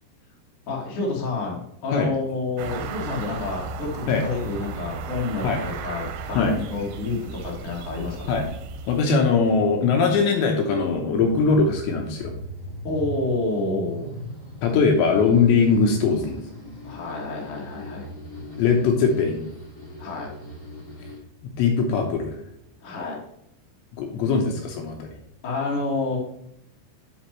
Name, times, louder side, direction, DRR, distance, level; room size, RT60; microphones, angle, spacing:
voice 1, 0.7-8.3 12.8-14.1 16.8-18.1 20.0-20.3 22.8-23.2 25.4-26.2, left 3 dB, 60° left, -2 dB, 1.4 m, -29 dB
sound 1, 2.6-9.0, right 5 dB, 80° right, 2.9 m, -35 dB
voice 2, 8.9-12.3 14.6-16.4 18.6-19.4 21.6-22.4 24.0-25.1, left 5 dB, 75° left, 3 dB, 2.8 m, -21 dB
sound 2, 10.7-21.2, left 1 dB, 30° left, 1.4 m, -40 dB
9.9 x 5.9 x 3.0 m, 0.77 s
omnidirectional pair, 5.7 m